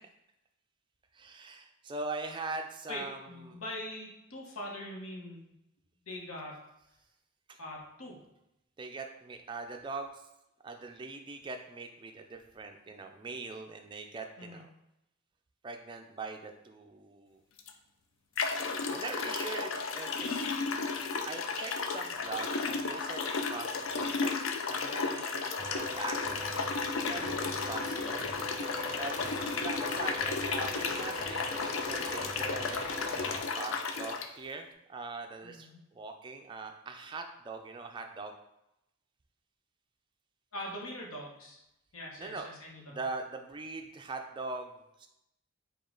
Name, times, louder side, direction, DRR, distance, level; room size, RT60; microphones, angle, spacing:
voice 1, 1.1-3.2 3.5-3.6 7.5-7.6 8.8-10.3 10.6-14.7 15.6-17.4 18.9-20.5 21.2-24.3 24.7-26.2 27.1-27.2 27.5-28.2 28.9-29.2 29.5-38.3 42.2-42.5 42.9-45.1, right 3 dB, 20° right, 4 dB, 0.3 m, -42 dB
voice 2, 2.9-5.5 6.1-6.6 7.6-8.2 14.4-14.6 27.1-27.5 35.4-35.8 40.5-41.6 41.9-43.0, left 1 dB, 85° left, -2 dB, 1.0 m, -42 dB
sound 1, 17.6-17.7 18.4-34.3, left 4 dB, 70° left, 0.4 m, -33 dB
sound 2, 25.6-33.4, equal, ahead, 0.8 m, -42 dB
5.0 x 2.3 x 3.7 m, 0.87 s
head